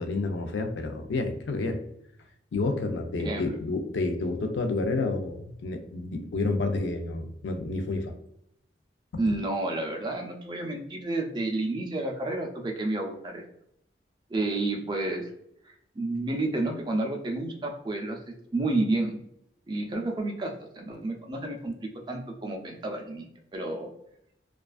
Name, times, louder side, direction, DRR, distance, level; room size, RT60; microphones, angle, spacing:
voice 1, 0.0-1.8 2.5-8.1, left 3 dB, 90° left, 5 dB, 0.4 m, -29 dB
voice 2, 9.2-13.4 14.3-15.3 15.6-19.2 19.7-23.2 23.5-23.9, right 2 dB, 25° right, 2 dB, 0.4 m, -30 dB
2.3 x 2.3 x 2.3 m, 0.74 s
head